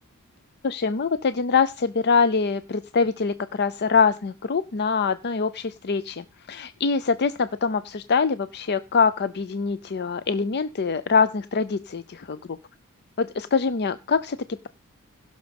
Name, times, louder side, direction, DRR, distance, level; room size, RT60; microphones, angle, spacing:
voice 1, 0.6-12.4 13.2-14.4, left 5 dB, 50° left, 13 dB, 0.6 m, -24 dB
16.0 x 6.5 x 5.2 m, 0.30 s
head